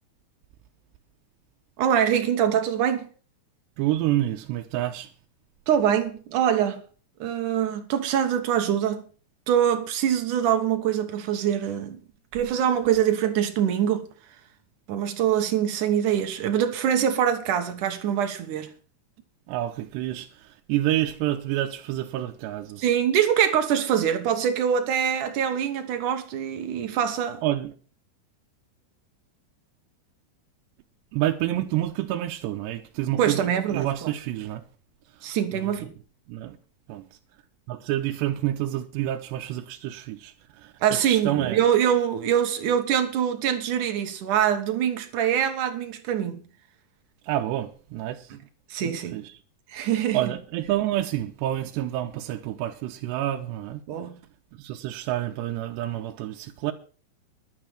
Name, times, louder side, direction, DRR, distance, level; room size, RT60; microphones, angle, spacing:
voice 1, 1.8-3.1 5.7-6.8 7.2-9.0 9.5-12.0 12.3-14.1 14.9-18.7 22.8-27.4 33.2-34.1 35.2-35.9 40.8-46.5 48.3-48.4 48.7-49.2 49.7-50.3 53.9-54.2, right 9 dB, 65° right, 2.1 m, -24 dB
voice 2, 3.8-5.1 19.5-22.8 27.4-27.7 31.1-34.6 35.5-35.9 36.3-36.6 36.9-37.1 37.7-41.6 47.2-48.3 48.8-49.3 50.1-53.8 54.6-56.7, right 14 dB, 80° right, 2.9 m, -28 dB
11.5 x 8.5 x 7.4 m
omnidirectional pair, 5.0 m